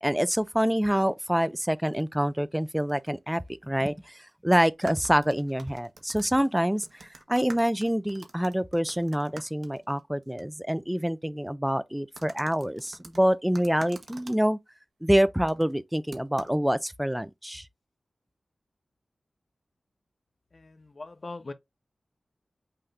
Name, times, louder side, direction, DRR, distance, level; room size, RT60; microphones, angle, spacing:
voice 1, 0.0-14.6 15.0-17.7, equal, 5° right, 0.4 m, -26 dB
sound 1, 1.9-2.1 2.9-3.1 3.3-3.4 4.7-10.4 10.7-10.8 12.2-14.4 15.5-15.7 16.1-16.5, right 3 dB, 70° right, 1.0 m, -48 dB
voice 2, 20.5-21.5, left 3 dB, 45° left, 0.7 m, -41 dB
5.7 x 2.6 x 3.3 m
wide cardioid pair, 100°, 0 cm